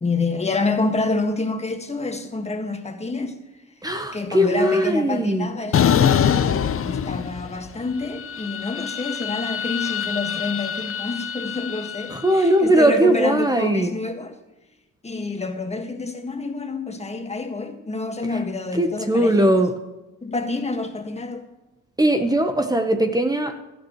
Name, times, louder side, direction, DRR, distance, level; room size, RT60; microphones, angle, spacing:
voice 1, 0.0-3.4 4.1-14.4 15.0-19.5 20.2-21.4, left 3 dB, 20° left, 1.7 m, -28 dB
voice 2, 3.8-5.5 12.1-14.0 18.7-19.7 22.0-23.6, right 1 dB, 10° right, 1.1 m, -19 dB
sound 1, 5.7-7.7 8.0-12.3, left 8 dB, 45° left, 0.8 m, -24 dB
16.0 x 12.5 x 3.1 m
cardioid pair, 90°, 30 cm